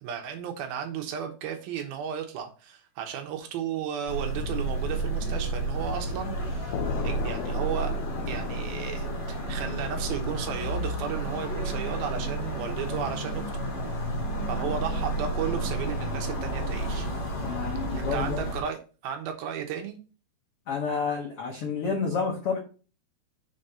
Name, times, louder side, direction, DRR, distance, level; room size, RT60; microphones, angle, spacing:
voice 1, 0.0-8.0 8.3-13.6 14.5-17.1 17.9-18.8 19.0-20.0, right 8 dB, 75° right, 5 dB, 2.9 m, -34 dB
sound 1, 4.1-18.6, right 2 dB, 40° left, 3.8 m, -31 dB
sound 2, 4.4-10.2, left 7 dB, 90° left, 2.6 m, -36 dB
voice 2, 14.4-14.8 17.4-18.4 20.7-22.6, left 5 dB, 70° left, 1 dB, 1.3 m, -30 dB
6.5 x 5.2 x 4.2 m, 0.35 s
omnidirectional pair, 4.5 m